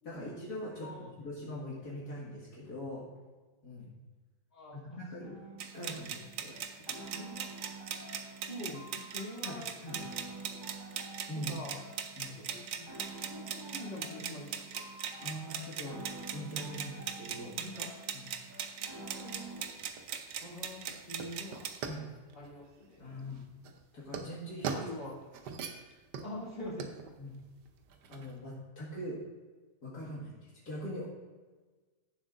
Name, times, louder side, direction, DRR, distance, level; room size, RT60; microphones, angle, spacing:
voice 1, 0.0-3.1 3.6-3.9 4.7-5.3 5.7-6.5 9.4-10.1 11.3-11.5 12.2-12.4 15.2-16.0 16.3-17.5 18.1-18.2 21.8-22.0 23.0-23.4 23.9-24.8 27.2-27.3 28.1-29.2 29.8-31.0, equal, 70° left, -6 dB, 2.5 m, -42 dB
voice 2, 0.8-1.1 4.5-5.5 5.9-6.0 6.6-6.7 7.1-7.5 8.4-9.7 10.4-10.6 11.3-11.8 12.5-14.8 17.5-18.1 18.8-19.7 20.4-20.8 21.1-21.6 22.3-23.1 24.6-25.2 26.2-26.9, left 1 dB, 35° left, -7 dB, 3.1 m, -45 dB
sound 1, 5.2-19.6, right 2 dB, 15° right, 1.7 m, -49 dB
sound 2, 5.6-21.8, right 8 dB, 65° right, 1.0 m, -41 dB
sound 3, 19.1-28.4, right 5 dB, 90° right, 1.4 m, -43 dB
15.5 x 7.3 x 2.5 m, 1.3 s
omnidirectional pair, 1.7 m